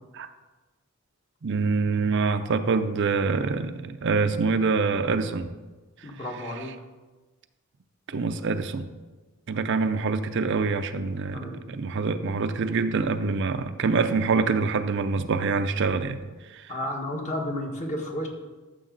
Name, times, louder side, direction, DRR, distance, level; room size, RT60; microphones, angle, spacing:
voice 1, 1.4-5.5 6.4-6.7 8.1-8.9 9.5-16.2 16.5-16.7 17.1-17.2, right 4 dB, 60° right, 9 dB, 0.5 m, -25 dB
voice 2, 6.0-6.7 11.3-11.6 16.7-18.3, left 1 dB, 35° left, 1 dB, 1.5 m, -32 dB
13.0 x 6.9 x 3.9 m, 1.2 s
head